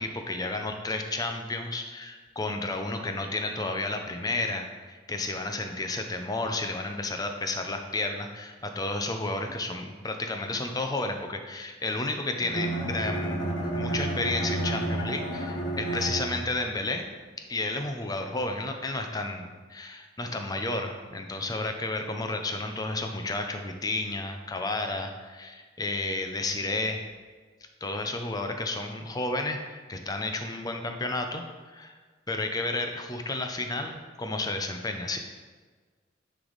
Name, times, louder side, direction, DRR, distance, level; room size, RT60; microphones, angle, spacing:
voice 1, 0.0-17.0 17.5-27.0 27.8-32.0 32.3-35.2, left 2 dB, 20° left, 5 dB, 0.5 m, -32 dB
Bowed string instrument, 12.4-16.7, right 1 dB, 90° left, 1.3 m, -31 dB
9.3 x 3.3 x 3.9 m, 1.4 s
head